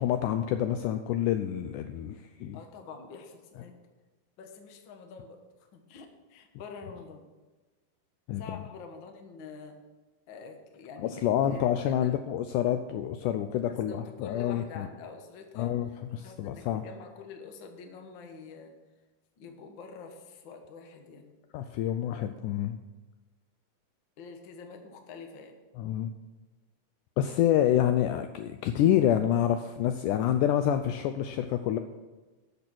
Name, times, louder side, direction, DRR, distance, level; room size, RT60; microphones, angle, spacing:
voice 1, 0.0-2.6 8.3-8.6 11.0-14.9 15.6-16.8 21.5-22.8 25.8-26.1 27.2-31.8, left 11 dB, 85° left, 9 dB, 1.8 m, -27 dB
voice 2, 2.5-3.8 4.4-5.4 5.7-7.2 8.4-9.8 10.3-12.2 13.7-16.0 16.2-18.7 19.4-21.3 24.2-25.5, left 5 dB, 70° left, 4 dB, 1.1 m, -46 dB
12.0 x 6.8 x 6.1 m, 1.2 s
omnidirectional pair, 4.1 m